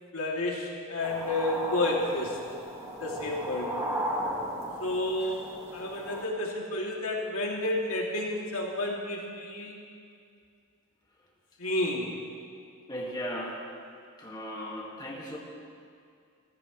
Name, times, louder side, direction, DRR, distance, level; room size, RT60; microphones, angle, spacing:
voice 1, 0.1-2.4 2.8-3.8 4.8-9.7 11.6-12.2, left 1 dB, 75° left, -2 dB, 2.7 m, -31 dB
sound 1, 1.0-6.3, right 1 dB, 15° right, 1.8 m, -35 dB
voice 2, 12.9-13.6 14.2-15.4, equal, 20° left, -2 dB, 1.9 m, -36 dB
27.5 x 14.5 x 3.2 m, 2.4 s
head